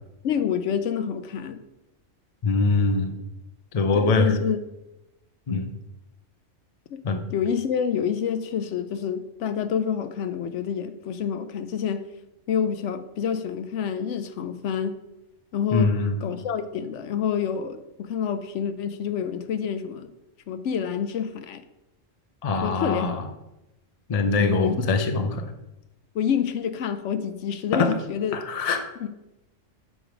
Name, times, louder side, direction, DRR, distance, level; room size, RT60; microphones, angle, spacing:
voice 1, 0.2-1.6 3.9-4.6 5.5-5.6 6.9-7.0 7.3-12.1 12.5-15.0 15.5-15.9 16.2-20.1 20.5-21.6 22.6-23.1 24.4-24.9 26.1-28.4 29.0-29.1, left 7 dB, 70° left, 11 dB, 0.9 m, -28 dB
voice 2, 2.4-3.2 3.7-4.4 5.5-5.7 7.0-7.2 15.7-16.2 22.4-23.2 24.1-25.5 27.7-27.9 28.3-28.8, left 3 dB, 40° left, 6 dB, 0.6 m, -23 dB
7.9 x 5.0 x 5.0 m, 0.95 s
omnidirectional pair, 1.3 m